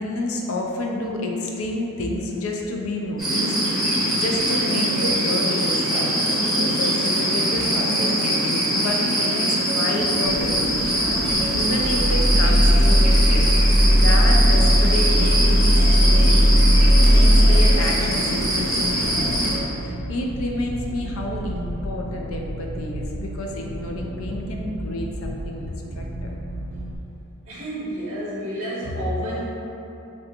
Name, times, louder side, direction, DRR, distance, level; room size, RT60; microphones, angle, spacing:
voice 1, 0.0-16.5 16.7-26.3, left 1 dB, 70° left, 0 dB, 0.4 m, -30 dB
sound 1, 3.2-19.6, right 1 dB, ahead, 0.7 m, -22 dB
sound 2, 10.2-27.0, right 1 dB, 75° right, 0.3 m, -33 dB
sound 3, 11.8-17.7, equal, 55° left, 1.0 m, -16 dB
voice 2, 27.5-29.5, equal, 60° right, -7 dB, 0.7 m, -29 dB
3.3 x 2.4 x 2.8 m, 2.9 s
head